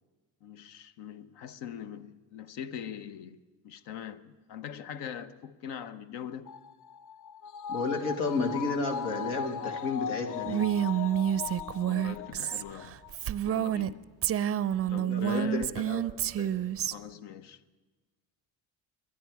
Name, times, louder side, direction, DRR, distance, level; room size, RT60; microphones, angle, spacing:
voice 1, 0.4-3.4 3.6-6.5 11.8-13.0 13.4-14.0 14.9-15.7 16.9-17.6, left 9 dB, 70° left, 0.9 m, -42 dB
sound 1, 6.5-13.1 13.5-13.6, left 8 dB, 45° left, 0.5 m, -39 dB
voice 2, 7.7-10.6 15.1-16.0 16.3-16.5, left 3 dB, 90° left, 1.8 m, -32 dB
Female speech woman speaking, 10.4-13.9 14.2-16.9, right 11 dB, 35° right, 0.4 m, -29 dB
22.5 x 9.6 x 4.7 m
supercardioid pair, 75°, 43 cm